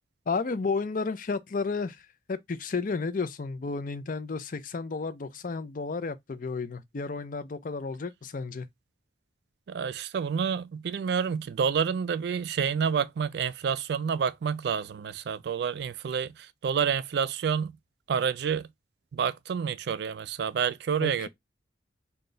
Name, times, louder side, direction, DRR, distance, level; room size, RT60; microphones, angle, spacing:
voice 1, 0.3-8.7 21.0-21.3, left 4 dB, 45° left, 0.5 m, -32 dB
voice 2, 9.7-17.7 18.1-18.7 19.1-21.3, right 7 dB, 60° right, 0.3 m, -29 dB
3.9 x 2.2 x 3.8 m
head